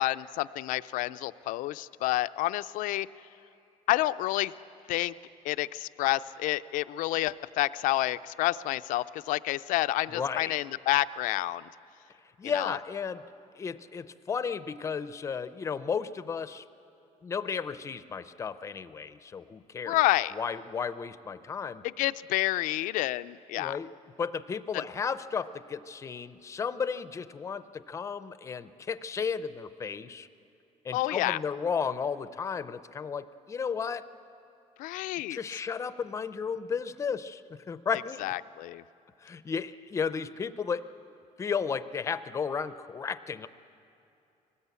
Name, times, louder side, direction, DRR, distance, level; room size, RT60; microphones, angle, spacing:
voice 1, 0.0-3.1 3.9-4.5 4.9-5.1 5.4-11.7 12.4-12.8 19.9-20.3 21.8-23.8 30.9-31.4 34.8-35.6 38.2-38.8, left 16 dB, 90° left, 13 dB, 0.5 m, -29 dB
voice 2, 10.1-10.5 12.4-13.2 13.5-16.6 17.2-20.0 20.3-21.8 23.5-23.9 24.2-30.3 30.8-34.0 35.3-38.2 39.2-40.8 41.4-43.5, left 6 dB, 20° left, 13 dB, 0.5 m, -34 dB
23.0 x 19.5 x 8.3 m, 2.7 s
cardioid pair, 180°, 13 cm